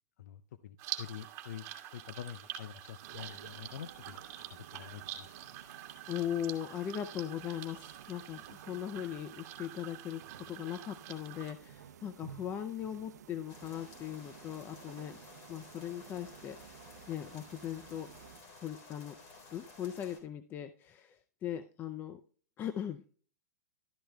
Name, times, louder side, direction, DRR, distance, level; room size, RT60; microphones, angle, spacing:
voice 1, 0.2-1.7 1.9-4.2 4.5-5.3, left 10 dB, 70° left, 14 dB, 0.5 m, -46 dB
sound 1, 0.8-11.5, right 12 dB, 35° right, 1.7 m, -46 dB
sound 2, 3.0-18.4, right 9 dB, 75° right, 0.7 m, -55 dB
voice 2, 6.1-15.2 15.5-18.1 18.6-19.2 19.5-22.2 22.6-23.1, left 10 dB, 20° left, 10 dB, 0.5 m, -39 dB
sound 3, 13.5-20.2, left 3 dB, 40° left, 3.7 m, -54 dB
12.5 x 10.0 x 2.2 m, 0.42 s
hypercardioid pair, 140°, 9 cm